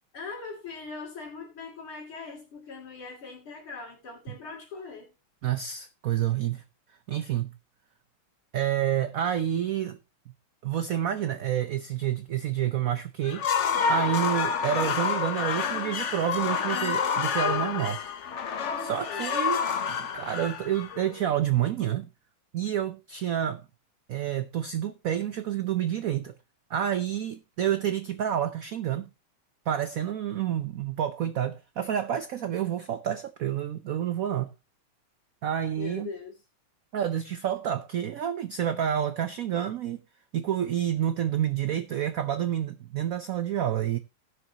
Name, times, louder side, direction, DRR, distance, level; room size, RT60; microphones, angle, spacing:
voice 1, 0.1-5.1 19.1-19.4 35.8-36.4, left 4 dB, 80° left, 3.5 m, -40 dB
voice 2, 5.4-6.6 7.1-7.5 8.5-10.0 10.6-13.5 13.9-18.0 18.8-19.6 19.9-22.1 22.5-23.6 24.1-26.3 26.7-29.1 29.7-34.5 35.4-36.1 36.9-40.0 40.3-44.0, right 10 dB, 85° right, 0.7 m, -29 dB
sound 1, 13.2-21.4, left 6 dB, 55° left, 0.8 m, -28 dB
18.5 x 6.4 x 2.8 m
omnidirectional pair, 2.3 m